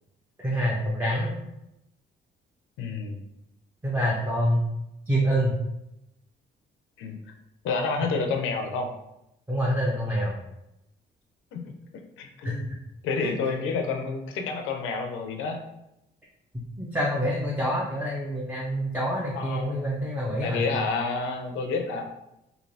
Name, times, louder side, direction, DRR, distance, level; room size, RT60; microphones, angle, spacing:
voice 1, 0.4-1.4 3.8-4.6 5.1-5.6 9.5-10.4 12.4-12.6 13.2-13.4 16.8-20.6, equal, 10° right, -5 dB, 0.6 m, -26 dB
voice 2, 2.8-3.2 7.0-7.2 7.6-8.9 11.5-11.7 12.2-12.7 13.0-15.6 19.3-19.8 20.4-22.0, left 4 dB, 85° left, 4 dB, 0.5 m, -29 dB
3.1 x 2.7 x 2.7 m, 0.86 s
cardioid pair, 90°, 20 cm